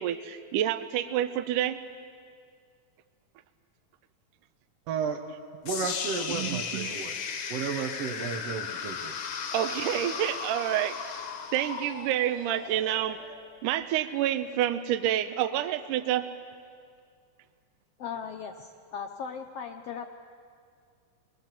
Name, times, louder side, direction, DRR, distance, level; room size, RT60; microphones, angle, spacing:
voice 1, 0.0-1.8 6.3-6.9 9.5-11.2 11.5-13.2 13.6-16.3, right 11 dB, 80° right, 9 dB, 2.2 m, -28 dB
voice 2, 4.9-5.2 5.6-7.2 7.5-9.2, right 6 dB, 65° right, 3 dB, 1.7 m, -33 dB
sound 1, 5.7-13.7, left 6 dB, 60° left, 1.4 m, -36 dB
voice 3, 18.0-20.1, left 6 dB, 85° left, 5 dB, 1.3 m, -38 dB
22.5 x 21.5 x 7.5 m, 2.2 s
omnidirectional pair, 3.8 m